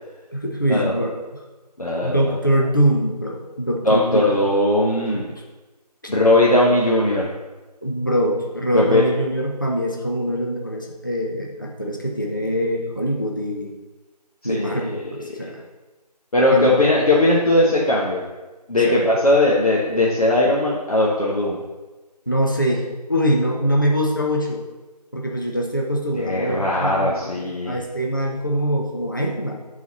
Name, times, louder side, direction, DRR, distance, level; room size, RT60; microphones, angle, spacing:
voice 1, 0.3-1.4 2.0-4.3 7.8-13.7 14.4-15.6 16.5-16.9 18.8-19.1 22.3-24.6 25.1-29.6, equal, 30° left, -1 dB, 0.5 m, -23 dB
voice 2, 1.8-2.3 3.8-5.2 6.1-7.3 8.7-9.0 14.5-15.0 16.3-18.2 18.7-21.6 26.1-27.8, left 2 dB, 60° left, -5 dB, 1.2 m, -19 dB
7.4 x 4.0 x 4.2 m, 1.2 s
figure-of-eight pair, 170°, 21 cm